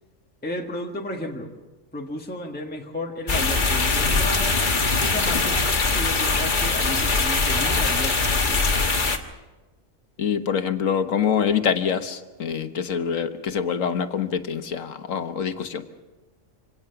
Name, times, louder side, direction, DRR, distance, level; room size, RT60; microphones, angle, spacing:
voice 1, 0.4-1.5 1.9-4.6 5.0-8.7, left 1 dB, 5° left, 0 dB, 1.6 m, -33 dB
sound 1, 3.3-9.2, left 3 dB, 40° left, 1.5 m, -22 dB
voice 2, 10.2-15.8, left 7 dB, 85° left, 9 dB, 1.5 m, -25 dB
26.0 x 17.5 x 5.8 m, 1.1 s
omnidirectional pair, 1.3 m